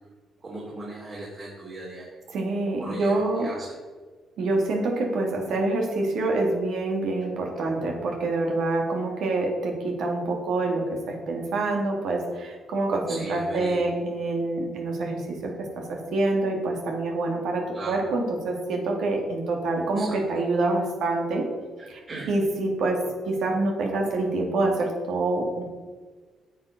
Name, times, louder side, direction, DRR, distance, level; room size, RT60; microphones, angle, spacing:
voice 1, 0.4-2.1 2.4-3.7 13.1-13.8 17.7-18.0 20.0-20.2 21.8-22.3, right 2 dB, 40° right, -5 dB, 2.8 m, -38 dB
voice 2, 2.3-3.5 4.4-21.5 21.9-22.0 22.3-25.6, right 2 dB, 75° right, 1 dB, 2.2 m, -26 dB
9.2 x 7.1 x 5.2 m, 1.4 s
cardioid pair, 90°, 0 cm